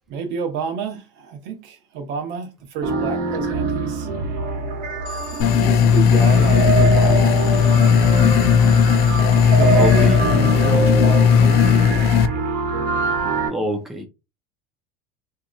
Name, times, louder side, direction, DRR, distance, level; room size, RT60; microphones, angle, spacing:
voice 1, 0.1-4.1 5.3-7.4 9.5-11.9, right 5 dB, 60° right, 0.8 m, -29 dB
sound 1, 2.8-13.5, right 4 dB, 45° right, 1.1 m, -24 dB
Alarm, 5.0-10.6, left 7 dB, 75° left, 1.3 m, -40 dB
sound 2, 5.4-12.3, left 7 dB, 50° left, 0.4 m, -15 dB
voice 2, 9.7-10.2 10.5-10.7 13.5-14.1, left 1 dB, ahead, 0.5 m, -26 dB
2.8 x 2.5 x 2.3 m
supercardioid pair, 125°, 20 cm